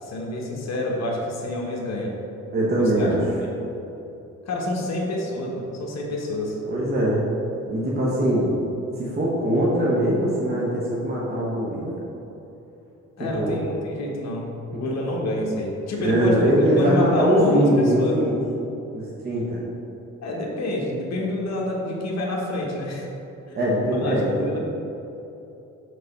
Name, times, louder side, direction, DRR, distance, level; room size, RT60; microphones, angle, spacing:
voice 1, 0.0-2.2 3.0-3.1 4.4-6.6 13.2-16.5 16.8-18.2 20.2-23.1 23.5-23.6 23.9-24.7, left 1 dB, 60° left, -2 dB, 1.2 m, -28 dB
voice 2, 2.5-3.2 6.7-7.3 7.7-8.6 9.0-12.0 13.3-13.6 14.7-14.8 16.0-18.4 18.9-19.6 23.5-24.3, right 1 dB, 30° right, -5 dB, 1.1 m, -21 dB
5.3 x 3.9 x 5.3 m, 2.9 s
cardioid pair, 90°, 30 cm